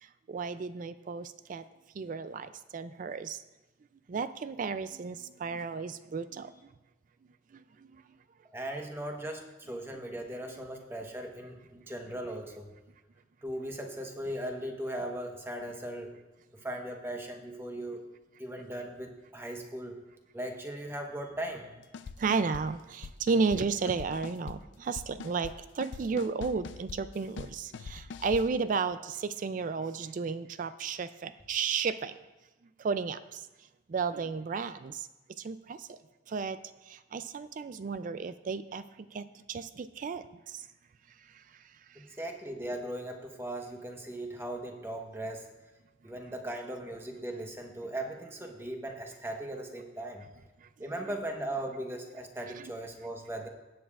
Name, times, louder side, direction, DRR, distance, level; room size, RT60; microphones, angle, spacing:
voice 1, 0.0-1.6 1.9-3.4 4.1-6.5 7.5-8.0 22.2-32.2 32.8-33.5 33.9-35.1 35.4-36.0 36.3-36.6 36.8-40.7 41.3-41.4 41.9-42.0 50.6-50.9 52.6-52.7, right 5 dB, 45° right, 13 dB, 0.3 m, -33 dB
voice 2, 8.5-12.7 13.4-16.1 16.5-18.0 18.4-20.0 20.3-21.7 41.9-45.5 46.0-50.3 50.8-53.5, right 1 dB, 15° right, 3 dB, 1.0 m, -38 dB
sound 1, 21.9-22.6 23.0-23.6 23.9-24.6 25.0-25.5 25.8-28.5, left 5 dB, 75° left, 0.4 m, -42 dB
17.0 x 8.6 x 2.4 m, 1.1 s
head